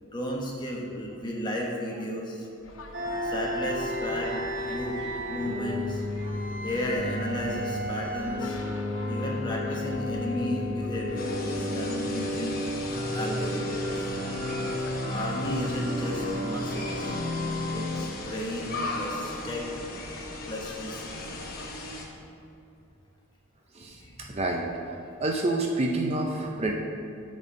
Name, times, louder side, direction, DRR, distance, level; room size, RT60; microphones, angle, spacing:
voice 1, 0.0-2.5 3.2-4.3 4.7-4.9 5.3-6.0 6.6-8.6 9.1-12.6 13.1-14.2 15.1-17.1 17.7-19.6 20.5-21.4 24.0-24.1, left 1 dB, 20° left, -2 dB, 1.1 m, -34 dB
sound 1, 2.6-21.7, left 2 dB, 65° left, 0.7 m, -47 dB
voice 2, 2.7-3.0 6.2-6.4 23.7-26.7, right 2 dB, 30° right, 1 dB, 0.5 m, -29 dB
sound 2, 2.9-18.0, left 1 dB, 60° right, 1.5 m, -32 dB
sound 3, 11.2-22.1, left 2 dB, 40° left, 1.0 m, -38 dB
8.3 x 4.4 x 6.2 m, 2.7 s
head